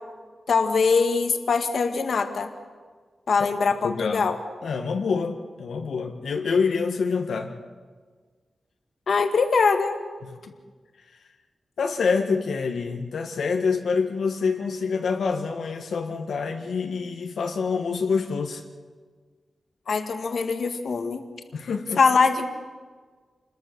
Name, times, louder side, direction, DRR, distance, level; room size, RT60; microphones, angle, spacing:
voice 1, 0.5-2.5 3.3-4.4 9.1-10.0 19.9-21.2 22.0-22.5, left 5 dB, 60° left, 6 dB, 1.8 m, -22 dB
voice 2, 3.8-4.3 4.6-7.6 11.8-18.6 21.5-22.0, left 5 dB, 85° left, 3 dB, 1.6 m, -26 dB
27.5 x 21.5 x 6.9 m, 1.5 s
wide cardioid pair, 160°, 0 cm